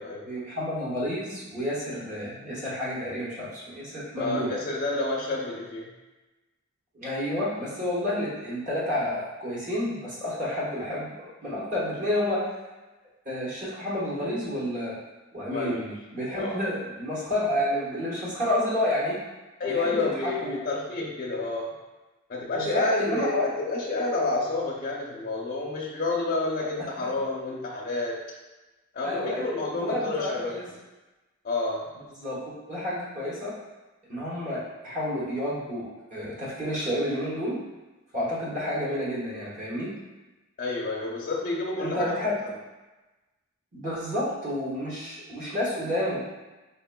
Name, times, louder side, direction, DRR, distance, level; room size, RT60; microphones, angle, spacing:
voice 1, 0.2-4.5 6.9-12.4 13.2-15.0 15.3-19.2 19.6-20.6 22.5-23.4 26.8-26.9 29.0-29.5 29.7-30.6 32.2-33.5 34.1-37.6 38.1-39.9 41.8-42.4 43.7-46.2, left 1 dB, 35° right, -7 dB, 1.1 m, -30 dB
voice 2, 4.2-5.9 15.5-15.9 16.3-16.6 19.6-21.7 22.3-28.2 28.9-30.6 31.4-31.8 40.6-42.1, left 2 dB, 40° left, -5 dB, 0.5 m, -29 dB
4.4 x 3.4 x 2.2 m, 1.1 s
head